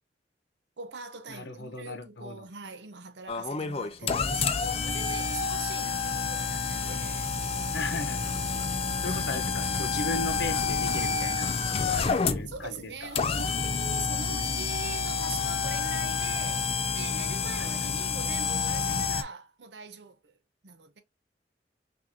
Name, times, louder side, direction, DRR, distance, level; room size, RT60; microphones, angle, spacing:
voice 1, 0.8-7.3 9.1-9.2 12.0-12.1 12.5-20.4 20.6-21.0, right 5 dB, 75° right, 0.8 m, -42 dB
voice 2, 1.3-2.4 7.7-8.3 9.0-13.1 14.3-14.8 17.6-17.9, left 3 dB, 75° left, 0.9 m, -37 dB
sound 1, 3.3-19.2, left 5 dB, 35° left, 0.4 m, -29 dB
6.0 x 2.6 x 2.6 m
head